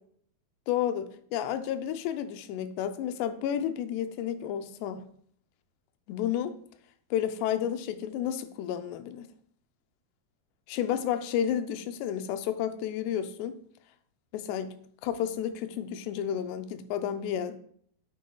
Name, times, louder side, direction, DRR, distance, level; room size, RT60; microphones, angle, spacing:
voice 1, 0.7-5.0 6.1-6.6 7.1-9.3 10.7-13.6 14.3-14.7 15.0-17.6, left 10 dB, 85° left, 2.7 m, -31 dB
9.3 x 9.0 x 2.3 m
omnidirectional pair, 4.7 m